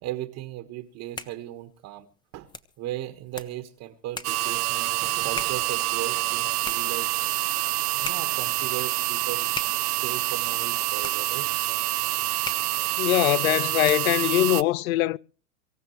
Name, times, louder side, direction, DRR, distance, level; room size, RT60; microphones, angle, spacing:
voice 1, 0.0-2.1 2.3-2.5 2.8-7.1 7.9-9.5 9.8-11.5, right 14 dB, 35° right, 1.3 m, -37 dB
sound 1, 0.8-14.3, left 4 dB, 10° left, 0.9 m, -43 dB
sound 2, 4.2-14.6, right 18 dB, 65° right, 0.6 m, -27 dB
voice 2, 13.0-15.2, left 15 dB, 55° left, 0.6 m, -22 dB
24.5 x 15.0 x 3.1 m
hypercardioid pair, 120°, 50 cm